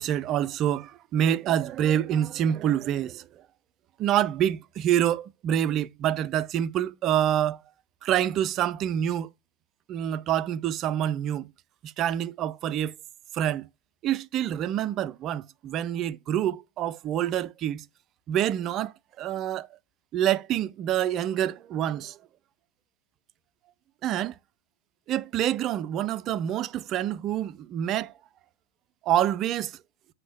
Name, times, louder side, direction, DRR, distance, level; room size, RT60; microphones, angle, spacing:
voice 1, 0.0-3.2 4.0-7.6 8.0-9.3 9.9-11.5 11.8-12.9 13.3-13.7 14.0-17.8 18.3-19.7 20.1-22.2 24.0-24.4 25.1-28.1 29.1-29.8, right 10 dB, 35° right, 0.4 m, -27 dB
7.3 x 3.2 x 5.9 m
figure-of-eight pair, 90°, 0 cm